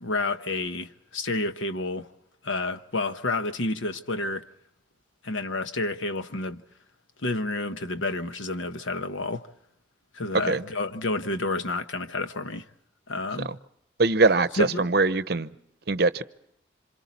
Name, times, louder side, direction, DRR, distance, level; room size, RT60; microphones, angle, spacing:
voice 1, 0.0-2.1 2.4-4.5 5.2-6.6 7.2-9.5 10.1-12.6 13.1-13.5 14.6-14.9, left 2 dB, 85° left, 1.1 m, -29 dB
voice 2, 14.0-15.5 15.9-16.2, right 3 dB, 55° right, 0.7 m, -22 dB
27.5 x 26.5 x 4.1 m
head